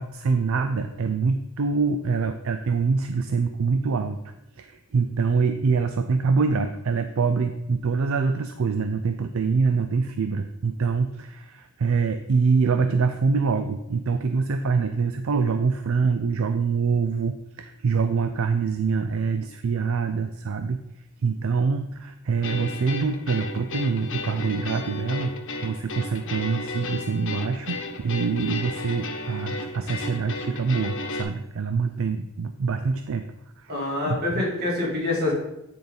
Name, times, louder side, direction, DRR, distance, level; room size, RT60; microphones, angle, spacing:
voice 1, 0.0-4.2 4.6-20.8 21.2-25.3 25.6-33.3 33.6-34.4, right 5 dB, 70° right, 8 dB, 0.5 m, -25 dB
sound 1, 22.4-31.2, left 3 dB, 60° left, 1.0 m, -34 dB
voice 2, 33.7-35.3, left 2 dB, 45° right, -5 dB, 3.3 m, -26 dB
9.4 x 4.0 x 5.1 m, 0.87 s
head